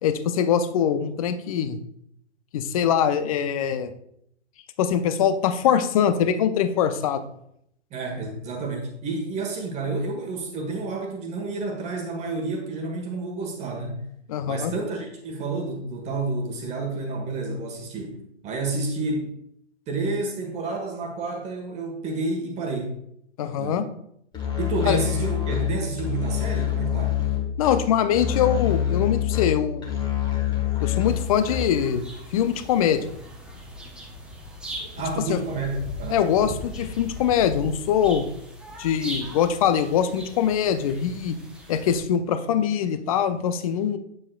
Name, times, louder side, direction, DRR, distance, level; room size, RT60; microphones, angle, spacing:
voice 1, 0.0-1.8 2.5-3.9 4.8-7.2 14.3-14.7 23.4-23.9 24.9-25.0 27.6-29.9 30.8-32.0 32.3-33.0 35.3-35.4 36.1-38.3 38.8-41.4 41.7-44.0, left 8 dB, 30° left, 10 dB, 0.5 m, -23 dB
voice 2, 7.9-14.0 14.5-19.3 19.9-22.9 23.6-23.8 24.6-27.2 35.0-36.3, right 3 dB, 20° right, 2 dB, 1.3 m, -30 dB
Musical instrument, 24.3-31.9, left 11 dB, 15° left, 1.2 m, -26 dB
sound 1, 31.1-42.0, left 1 dB, 5° right, 0.7 m, -39 dB
8.5 x 7.4 x 2.3 m, 0.73 s
figure-of-eight pair, 120°, 35 cm